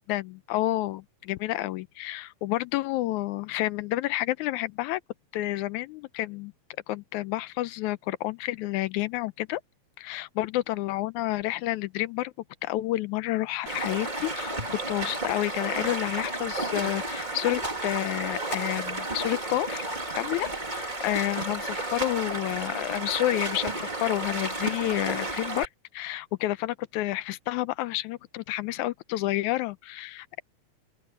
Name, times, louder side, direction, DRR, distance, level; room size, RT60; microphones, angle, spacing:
voice 1, 0.0-5.0 5.3-6.5 6.9-9.6 10.0-12.3 12.6-25.7 25.9-30.4, left 16 dB, 85° left, 2.0 m, -30 dB
Stream, 13.7-25.7, right 2 dB, 15° right, 2.3 m, -32 dB
open air
omnidirectional pair, 3.4 m